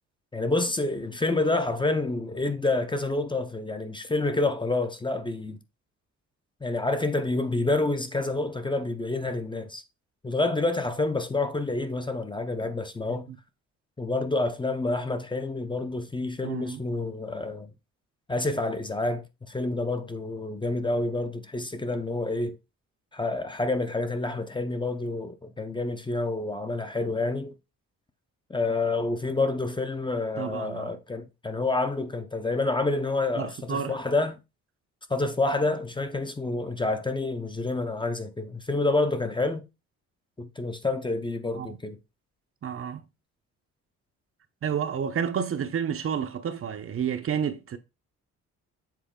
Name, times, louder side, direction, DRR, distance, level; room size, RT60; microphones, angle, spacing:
voice 1, 0.3-5.6 6.6-9.8 10.2-13.3 14.0-17.7 18.3-22.6 23.1-27.6 28.5-34.4 35.1-39.7 40.4-42.0, left 2 dB, 15° left, 0.8 m, -28 dB
voice 2, 16.4-16.8 30.4-30.9 33.4-33.9 41.6-41.8 42.6-43.0 44.6-47.8, right 7 dB, 45° right, 0.9 m, -30 dB
7.5 x 3.9 x 3.7 m
cardioid pair, 90°, 30 cm